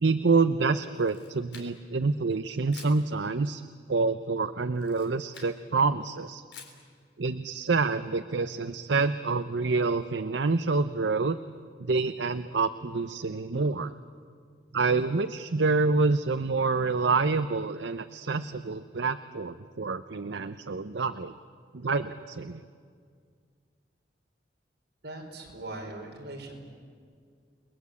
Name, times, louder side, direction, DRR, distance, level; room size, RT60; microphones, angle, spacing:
voice 1, 0.0-3.6 3.9-6.4 7.2-11.4 11.8-14.0 14.7-21.4 21.7-22.6, right 4 dB, 80° right, 11 dB, 0.7 m, -27 dB
Camera, 0.8-2.0 2.7-3.0 4.7-5.6 6.5-6.9, left 6 dB, 75° left, 3.8 m, -49 dB
voice 2, 25.0-26.5, right 2 dB, 65° right, 0 dB, 5.2 m, -40 dB
29.5 x 21.0 x 8.3 m, 2.1 s
head